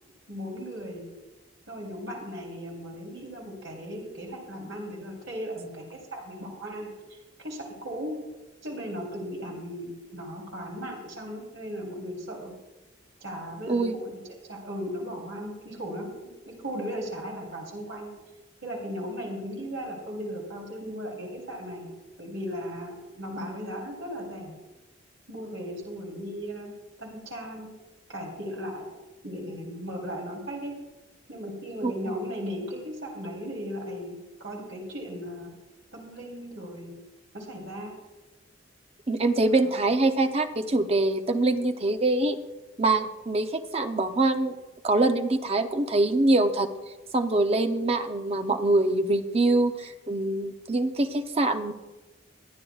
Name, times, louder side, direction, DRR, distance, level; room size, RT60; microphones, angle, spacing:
voice 1, 0.3-1.0 1.7-8.2 8.6-12.5 13.2-14.2 14.5-16.1 16.5-18.1 18.6-21.9 22.2-24.6 25.3-26.7 27.0-27.7 28.1-28.9 29.2-30.7 31.3-35.5 35.9-36.9 37.3-37.9 39.6-39.8, equal, 80° right, -2 dB, 3.3 m, -37 dB
voice 2, 39.1-42.4 42.8-44.5 44.8-46.7 47.1-51.7, right 2 dB, 30° right, 8 dB, 0.6 m, -24 dB
22.5 x 10.0 x 2.4 m, 1.1 s
head